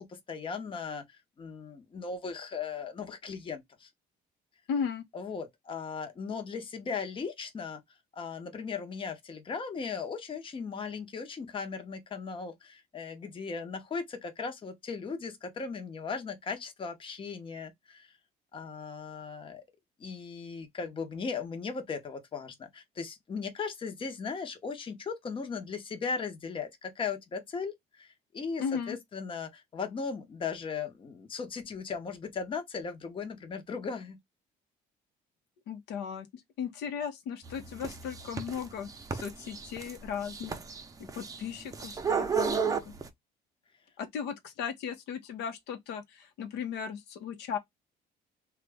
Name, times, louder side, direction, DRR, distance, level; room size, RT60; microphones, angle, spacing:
voice 1, 0.0-3.9 5.1-7.8 8.1-18.1 18.5-19.6 20.0-34.2, left 5 dB, 30° left, 0.8 m, -37 dB
voice 2, 4.7-5.0 28.6-29.0 35.7-40.6 41.0-42.9 44.0-47.6, left 7 dB, 85° left, 0.8 m, -36 dB
sound 1, 37.5-43.1, right 6 dB, 20° right, 0.6 m, -33 dB
3.0 x 2.3 x 3.3 m
cardioid pair, 110°, 17 cm